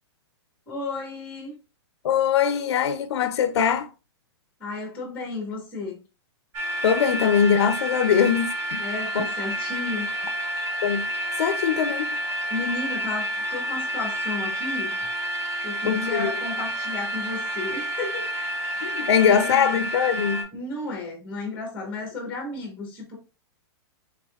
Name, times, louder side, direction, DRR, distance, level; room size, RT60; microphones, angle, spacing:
voice 1, 0.7-1.6 4.6-6.0 8.8-10.1 10.4-10.5 12.5-15.0 15.6-18.7 19.0-19.8 20.5-23.2, left 3 dB, 10° left, 0.9 m, -33 dB
voice 2, 2.0-3.9 6.8-8.8 9.1-9.3 10.8-11.1 11.4-12.2 15.9-16.3 18.8-20.5, left 8 dB, 75° left, 0.5 m, -22 dB
sound 1, 6.5-20.4, equal, 20° right, 0.6 m, -29 dB
3.5 x 3.4 x 2.2 m
hypercardioid pair, 170°, 14 cm